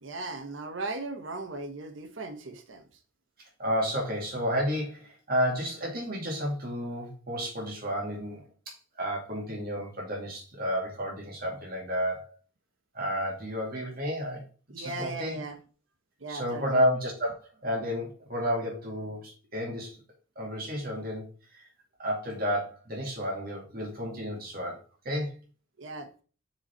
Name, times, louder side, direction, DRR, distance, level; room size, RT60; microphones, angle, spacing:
voice 1, 0.0-2.9 14.7-15.6 16.2-16.9 25.8-26.1, right 2 dB, 75° right, 8 dB, 1.0 m, -37 dB
voice 2, 3.4-12.4 12.9-14.4 14.8-15.4 16.3-20.0 20.4-21.7 22.0-24.8 25.0-25.4, equal, 50° right, 0 dB, 2.4 m, -31 dB
7.0 x 4.0 x 4.4 m, 0.38 s
head